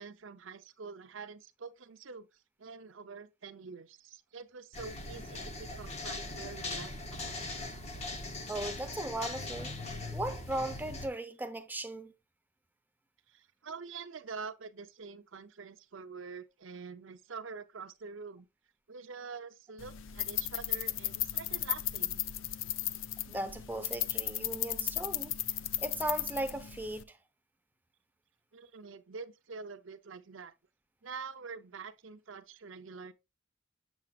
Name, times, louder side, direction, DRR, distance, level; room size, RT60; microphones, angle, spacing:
voice 1, 0.0-7.2 13.3-18.5 18.9-22.2 28.5-30.5 31.0-33.1, right 5 dB, 75° right, 0.7 m, -46 dB
sound 1, 4.7-11.1, left 2 dB, 35° left, 0.9 m, -40 dB
voice 2, 8.5-9.7 10.1-12.1 23.3-25.3 25.8-27.2, right 1 dB, 10° right, 0.8 m, -37 dB
sound 2, 19.8-27.0, left 12 dB, 75° left, 0.5 m, -35 dB
7.6 x 7.2 x 2.4 m
head